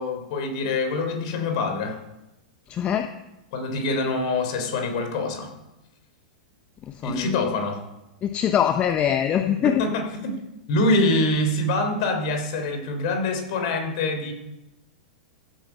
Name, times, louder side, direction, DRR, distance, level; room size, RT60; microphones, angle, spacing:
voice 1, 0.0-2.0 3.5-5.5 7.0-7.8 9.8-10.0 10.7-14.3, left 2 dB, 45° left, 5 dB, 3.5 m, -25 dB
voice 2, 2.7-3.1 6.8-7.5 8.2-9.8, left 9 dB, 25° left, 7 dB, 0.8 m, -23 dB
15.0 x 8.9 x 5.6 m, 0.95 s
figure-of-eight pair, 100°, 4 cm